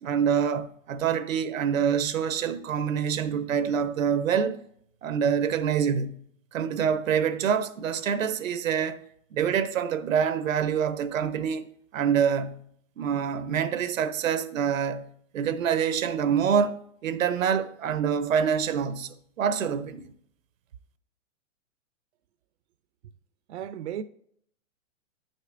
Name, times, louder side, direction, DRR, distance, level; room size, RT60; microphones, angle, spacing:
voice 1, 0.0-4.6 5.0-6.2 6.5-9.0 9.3-12.6 13.0-15.1 15.3-20.1, right 7 dB, 90° right, 0.8 m, -26 dB
voice 2, 23.5-24.0, right 9 dB, 60° right, 0.5 m, -34 dB
9.5 x 6.6 x 2.5 m
hypercardioid pair, 155°, 39 cm